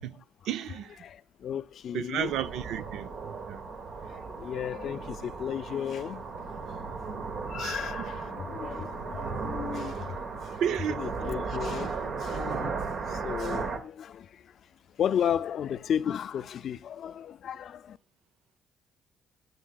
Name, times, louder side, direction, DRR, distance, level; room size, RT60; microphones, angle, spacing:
voice 1, 0.0-1.0 1.9-3.1 3.5-3.6 7.3-7.9 10.6-11.1, right 9 dB, 80° right, 0.4 m, -33 dB
voice 2, 1.0-2.3 4.1-6.2 7.4-10.2 10.4-10.6 10.9-12.8 13.1-14.5 15.0-18.0, left 9 dB, 65° left, 0.3 m, -34 dB
sound 1, 2.2-13.8, right 4 dB, 65° right, 1.2 m, -36 dB
19.5 x 6.8 x 2.3 m
cardioid pair, 90°, 0 cm